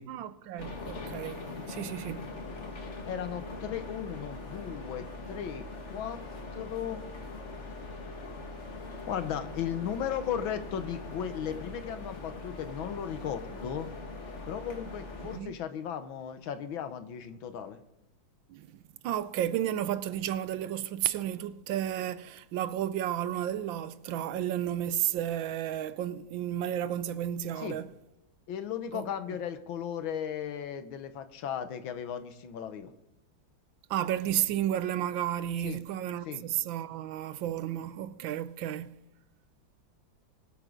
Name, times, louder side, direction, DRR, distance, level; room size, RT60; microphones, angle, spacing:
voice 1, 0.1-2.3 15.3-15.5 18.5-18.8 19.0-27.9 28.9-29.1 33.9-39.0, right 11 dB, 80° right, 1.4 m, -32 dB
sound 1, 0.6-15.4, left 3 dB, 35° left, 1.9 m, -42 dB
voice 2, 3.1-6.2 6.5-7.0 9.1-13.9 14.5-17.8 27.6-27.8 28.5-32.9 35.6-35.8 36.3-36.4, left 8 dB, 80° left, 1.7 m, -36 dB
23.0 x 8.5 x 3.8 m
omnidirectional pair, 2.2 m